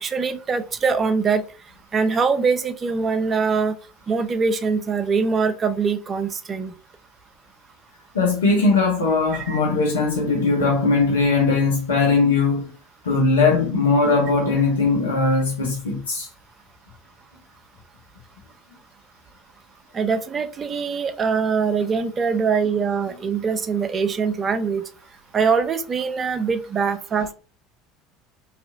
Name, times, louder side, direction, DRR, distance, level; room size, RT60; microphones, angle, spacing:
voice 1, 0.0-1.4 1.9-3.8 4.1-6.7 9.3-9.6 19.9-24.8 25.3-27.3, right 5 dB, 30° right, 0.5 m, -23 dB
voice 2, 8.1-12.7 13.0-16.3, left 3 dB, 80° left, 0.6 m, -19 dB
2.8 x 2.4 x 2.3 m
hypercardioid pair, 70°, 0 cm